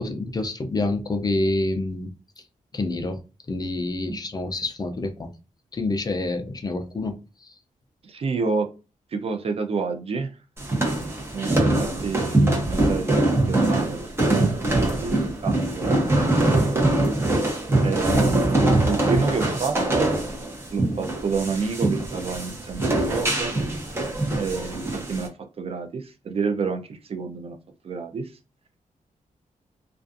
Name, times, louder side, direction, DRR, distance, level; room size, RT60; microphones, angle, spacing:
voice 1, 0.0-2.1 2.7-3.2 3.5-5.3 5.7-7.5, left 2 dB, 30° left, 6 dB, 0.4 m, -27 dB
voice 2, 8.0-8.7 9.1-10.3 11.3-14.4 14.7-16.9 17.8-18.4 18.8-20.2 20.7-23.6 24.3-25.3 25.6-27.6 27.8-28.3, right 4 dB, 45° right, 5 dB, 0.4 m, -29 dB
sound 1, 10.6-25.3, right 2 dB, 20° right, 0.8 m, -23 dB
2.4 x 2.3 x 2.5 m, 0.31 s
wide cardioid pair, 130°, 14 cm